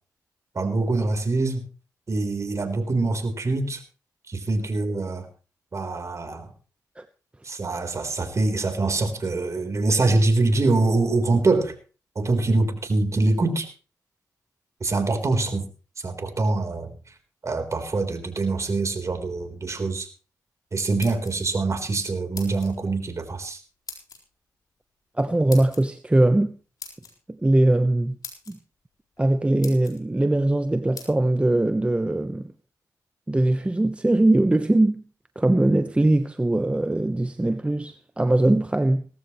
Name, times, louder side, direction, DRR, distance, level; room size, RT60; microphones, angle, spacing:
voice 1, 0.5-1.7 2.1-3.8 4.3-5.3 5.7-6.5 7.4-11.8 12.2-13.7 14.8-15.7 16.0-17.2 17.4-20.1 20.7-23.6, right 3 dB, 45° right, 3.9 m, -24 dB
sound 1, 20.8-21.6 22.3-22.8 23.9-24.2 25.5-25.8 26.8-27.1 27.8-27.9 28.2-28.5 29.2-29.3 29.6-30.0 31.0-31.1, left 5 dB, 60° left, 4.2 m, -40 dB
voice 2, 25.2-26.5 27.3-28.2 28.5-28.6 29.2-32.5 33.3-35.0 35.4-39.1, right 1 dB, 15° right, 0.9 m, -21 dB
18.5 x 14.5 x 3.1 m
supercardioid pair, 55°, 7 cm